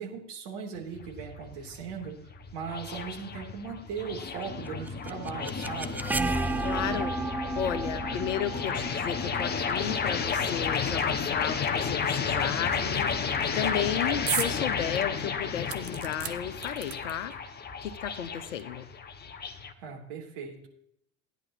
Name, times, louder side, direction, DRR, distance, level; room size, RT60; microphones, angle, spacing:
voice 1, 0.0-2.2 2.5-6.0 19.8-20.7, right 6 dB, 55° right, 0 dB, 3.2 m, -38 dB
sound 1, 0.7-19.7, left 6 dB, 25° left, 1.1 m, -32 dB
sound 2, 4.7-10.5, right 2 dB, 5° right, 0.4 m, -33 dB
voice 2, 6.6-7.1 7.6-13.1 13.5-17.3 17.8-18.8, left 9 dB, 70° left, 12 dB, 1.0 m, -33 dB
sound 3, 14.3-14.6 15.0-15.1 15.7-17.3 18.2-18.3 18.6-18.7, right 12 dB, 40° right, 0.9 m, -34 dB
16.0 x 10.0 x 2.9 m, 0.74 s
figure-of-eight pair, 70°, 38 cm